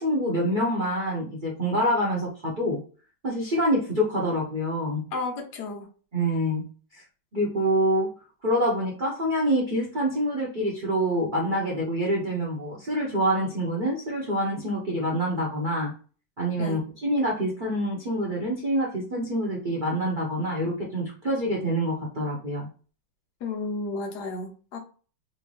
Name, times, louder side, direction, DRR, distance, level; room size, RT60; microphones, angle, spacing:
voice 1, 0.0-2.8 3.2-5.0 6.1-6.6 6.9-7.0 7.3-8.1 8.4-15.9 16.4-22.7, equal, 75° right, -3 dB, 0.4 m, -26 dB
voice 2, 5.1-5.9 16.6-16.8 23.4-24.8, left 3 dB, 65° left, 4 dB, 1.2 m, -32 dB
3.3 x 2.7 x 3.1 m, 0.39 s
omnidirectional pair, 2.2 m